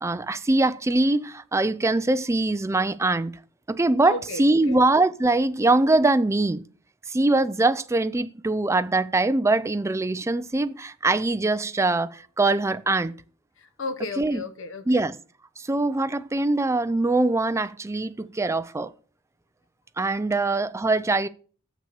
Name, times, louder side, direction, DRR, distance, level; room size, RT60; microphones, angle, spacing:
voice 1, 0.0-3.3 3.7-6.6 7.1-13.1 14.2-14.4 14.9-15.1 15.6-18.9 20.0-21.3, right 2 dB, 15° right, 0.4 m, -23 dB
voice 2, 4.0-4.8 13.6-15.1, left 2 dB, 65° left, 0.9 m, -34 dB
7.1 x 6.0 x 6.8 m
head